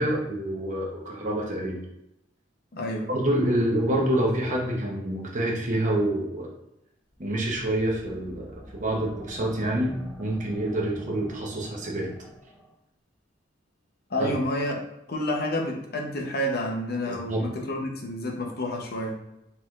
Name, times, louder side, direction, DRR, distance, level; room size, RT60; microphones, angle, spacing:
voice 1, 0.0-1.8 3.1-6.5 7.2-12.1 14.2-14.4 17.1-17.4, right 1 dB, 40° right, -2 dB, 0.9 m, -27 dB
voice 2, 2.7-3.1 14.1-14.8 15.1-19.2, left 1 dB, 55° left, 1 dB, 0.8 m, -29 dB
sound 1, 7.1-12.7, equal, 5° left, 0.4 m, -46 dB
4.5 x 3.8 x 2.4 m, 0.86 s
head